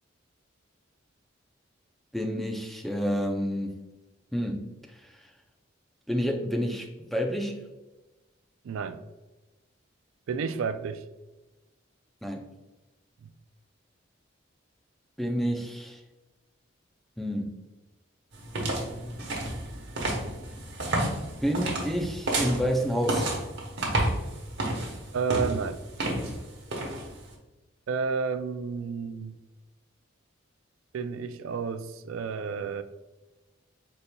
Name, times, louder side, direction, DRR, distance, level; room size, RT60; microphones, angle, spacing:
voice 1, 2.1-3.8 4.3-5.3 6.1-7.6 12.2-12.4 15.2-16.0 17.2-17.6 21.4-23.3, equal, ahead, 1 dB, 0.4 m, -29 dB
voice 2, 8.6-9.0 10.3-11.0 13.2-13.3 25.1-25.8 27.9-29.4 30.9-32.8, right 5 dB, 90° right, 11 dB, 0.3 m, -31 dB
sound 1, 18.3-27.3, right 1 dB, 60° right, 1.1 m, -31 dB
5.1 x 4.2 x 2.2 m, 1.1 s
head